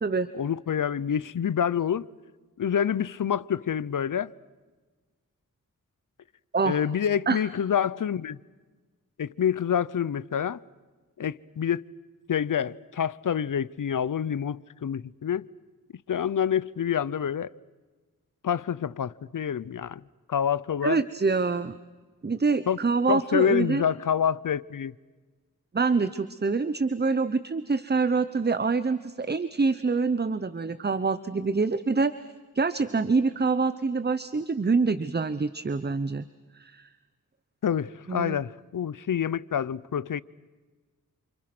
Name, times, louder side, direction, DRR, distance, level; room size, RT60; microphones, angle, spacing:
voice 1, 0.3-2.1 2.6-4.3 6.6-8.4 9.2-10.6 11.2-11.8 12.3-15.5 16.1-17.5 18.4-20.0 20.3-21.0 22.7-22.8 23.1-24.9 37.6-40.2, left 8 dB, 70° left, 0.8 m, -27 dB
voice 2, 20.8-21.7 22.2-23.8 25.7-32.1 32.5-36.2 36.5-36.9 38.1-38.4, right 4 dB, 30° right, 0.9 m, -26 dB
29.5 x 28.0 x 6.1 m
wide cardioid pair, 70°, 33 cm